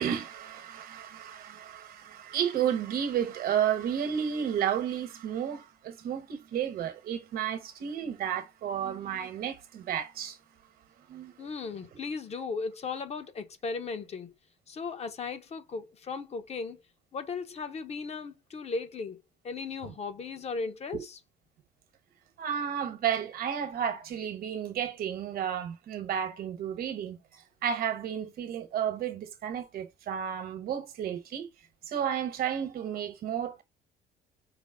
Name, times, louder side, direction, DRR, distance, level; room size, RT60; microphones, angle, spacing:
voice 1, 0.0-10.4 11.1-11.3 19.8-19.9 20.9-21.0 22.4-27.2 27.6-31.5 31.9-33.6, right 9 dB, 65° right, 1.1 m, -32 dB
voice 2, 11.4-14.3 14.7-16.8 17.1-21.2, left 4 dB, 40° left, 0.8 m, -36 dB
5.0 x 2.0 x 3.7 m
cardioid pair, 110°, 17 cm